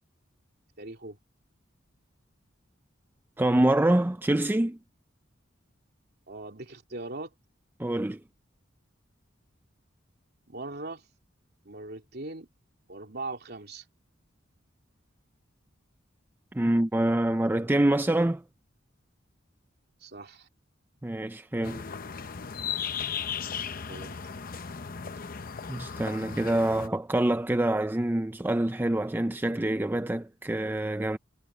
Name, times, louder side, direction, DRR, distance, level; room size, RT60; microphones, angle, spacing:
voice 1, 0.8-1.2 6.3-7.3 10.5-11.0 11.6-12.5 12.9-13.9 20.0-20.5 23.9-24.2, right 2 dB, 55° right, 3.1 m, -40 dB
voice 2, 3.4-4.8 7.8-8.2 16.5-18.4 21.0-21.8 25.7-31.2, right 1 dB, 10° right, 0.4 m, -26 dB
sound 1, 21.6-26.9, left 7 dB, 45° left, 0.8 m, -36 dB
head